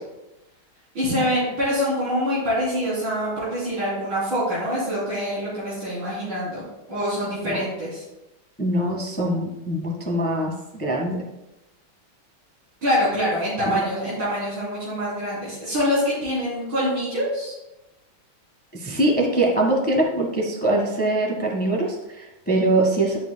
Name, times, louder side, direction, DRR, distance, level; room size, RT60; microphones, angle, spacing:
voice 1, 0.9-6.6 6.9-8.0 12.8-17.5, equal, 75° right, -8 dB, 4.2 m, -25 dB
voice 2, 8.6-11.2 18.7-23.2, right 1 dB, 5° left, -2 dB, 1.3 m, -23 dB
12.0 x 8.3 x 2.3 m, 0.96 s
omnidirectional pair, 2.2 m